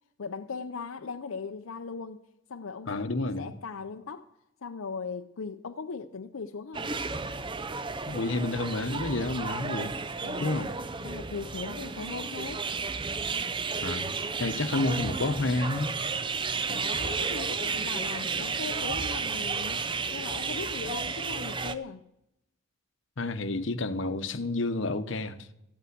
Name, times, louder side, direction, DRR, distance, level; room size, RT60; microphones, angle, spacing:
voice 1, 0.2-2.2 2.5-3.1 3.4-4.3 4.6-6.9 10.2-10.6 11.0-12.7 16.7-19.8 20.1-22.0, left 5 dB, 80° left, 0.6 m, -38 dB
voice 2, 2.9-3.5 8.1-10.0 10.4-10.7 13.8-15.9 20.8-21.0 23.2-25.4, left 2 dB, 65° left, 0.9 m, -30 dB
sound 1, 6.7-21.7, right 4 dB, 25° right, 0.5 m, -32 dB
14.0 x 8.4 x 8.1 m
head